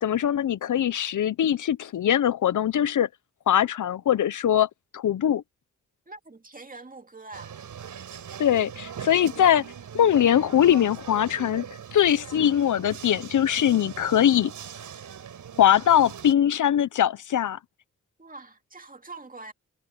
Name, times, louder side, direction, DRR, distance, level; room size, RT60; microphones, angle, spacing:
voice 1, 0.0-3.1 3.5-4.7 4.9-5.4 8.4-9.7 9.9-11.6 11.9-14.5 15.6-17.6, left 10 dB, 75° left, 0.7 m, -22 dB
voice 2, 6.1-7.5 18.2-19.5, right 3 dB, 25° right, 2.5 m, -44 dB
sound 1, 7.3-16.3, right 8 dB, 85° right, 5.8 m, -41 dB
cardioid pair, 60°, 31 cm